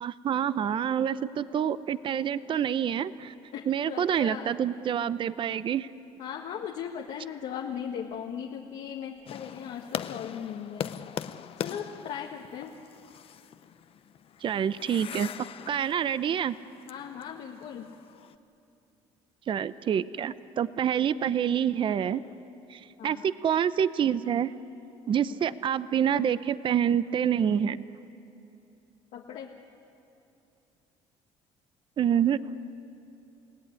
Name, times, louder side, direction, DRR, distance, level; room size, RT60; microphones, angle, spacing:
voice 1, 0.0-3.3 3.7-5.9 14.4-15.3 15.7-16.6 19.5-22.2 22.7-24.5 25.1-27.8 32.0-32.4, right 9 dB, 45° right, 15 dB, 0.7 m, -27 dB
voice 2, 3.5-4.6 6.2-11.0 11.6-12.7 16.9-17.9 23.0-23.3 25.3-25.4 29.1-29.5, left 8 dB, 70° left, 1 dB, 1.5 m, -38 dB
sound 1, 9.3-18.3, left 9 dB, 50° left, 0.7 m, -41 dB
29.5 x 17.0 x 9.7 m, 2.9 s
cardioid pair, 115°, 12 cm